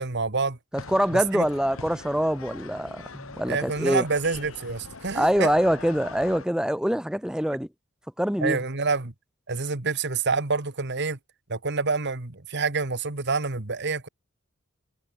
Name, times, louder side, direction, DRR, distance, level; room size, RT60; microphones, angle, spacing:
voice 1, 0.0-0.6 1.1-1.5 3.5-5.5 8.4-9.1 9.5-11.2 11.5-14.1, right 4 dB, 55° right, 2.0 m, -27 dB
sound 1, 0.7-6.5, left 4 dB, 70° left, 1.9 m, -42 dB
voice 2, 0.7-4.0 5.1-7.7 8.2-8.6, equal, 5° right, 1.6 m, -24 dB
head